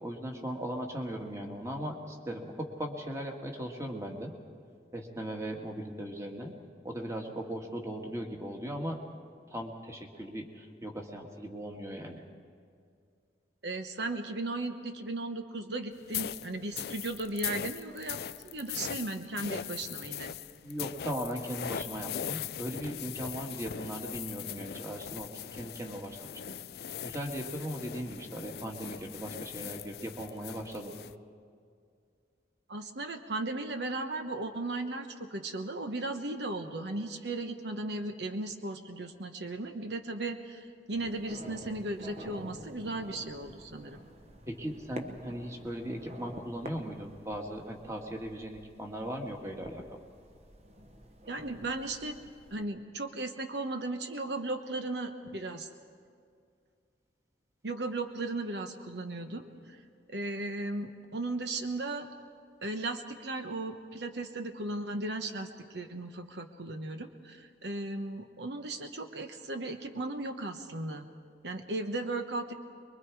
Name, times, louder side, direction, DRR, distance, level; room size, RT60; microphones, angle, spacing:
voice 1, 0.0-4.3 4.9-6.5 6.8-9.0 9.5-12.2 20.6-30.9 44.5-50.0, equal, 15° right, 1 dB, 1.9 m, -38 dB
voice 2, 13.6-20.3 32.7-44.0 51.3-52.2 52.5-55.7 57.6-59.8 60.1-62.1 62.6-71.1 71.4-72.5, right 2 dB, 80° right, 7 dB, 1.1 m, -36 dB
sound 1, 16.1-31.1, left 9 dB, 60° left, 0.4 m, -40 dB
sound 2, 40.9-52.6, equal, 40° right, 1.1 m, -49 dB
24.0 x 22.5 x 4.8 m, 2.3 s
head